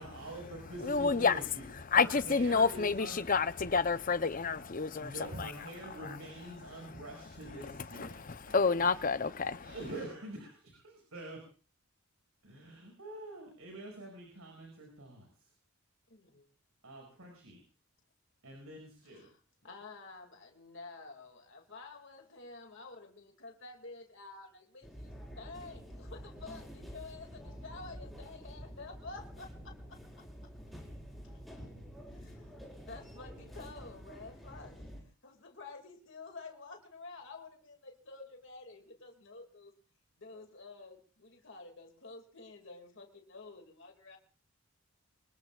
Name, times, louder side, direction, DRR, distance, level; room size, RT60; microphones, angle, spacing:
voice 1, 0.0-3.2 5.0-9.0 9.6-11.4 12.4-15.5 16.8-17.6 18.4-19.3, right 1 dB, 75° right, 5.8 m, -46 dB
voice 2, 0.8-1.4 1.9-5.1 5.4-5.5 7.9-9.7, left 4 dB, 40° left, 0.7 m, -29 dB
voice 3, 16.1-16.5 19.1-19.4 19.6-30.0 31.2-31.4 32.1-32.5 32.8-34.9 35.2-39.7 40.2-44.2, left 3 dB, 55° left, 2.3 m, -50 dB
sound 1, 24.8-35.0, equal, ahead, 4.6 m, -48 dB
25.5 x 20.5 x 2.4 m
head